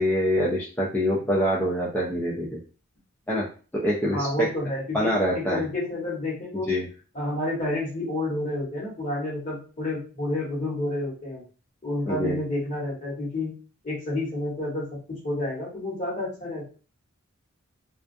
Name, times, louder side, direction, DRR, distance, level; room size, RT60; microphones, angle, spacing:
voice 1, 0.0-2.6 3.3-3.5 3.7-4.5 4.9-5.6 6.7-6.9 12.1-12.4, equal, 10° left, -6 dB, 0.3 m, -25 dB
voice 2, 4.1-6.7 7.1-11.4 11.8-13.5 13.8-16.7, left 1 dB, 35° left, -4 dB, 1.1 m, -30 dB
2.3 x 2.3 x 2.5 m, 0.37 s
head